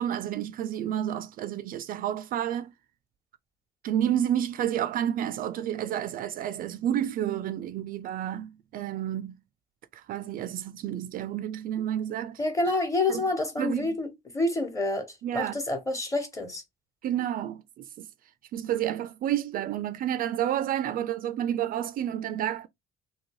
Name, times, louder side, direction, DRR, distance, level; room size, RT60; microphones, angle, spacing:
voice 1, 0.0-2.7 3.8-9.4 9.9-12.4 13.1-13.2 13.6-13.9 15.2-15.6 17.0-18.1 18.5-22.7, right 11 dB, 60° right, 0.4 m, -30 dB
voice 2, 12.4-14.1 14.3-15.1 15.3-16.6, left 2 dB, 20° left, 1.1 m, -28 dB
2.9 x 2.7 x 3.0 m
cardioid pair, 110°, 17 cm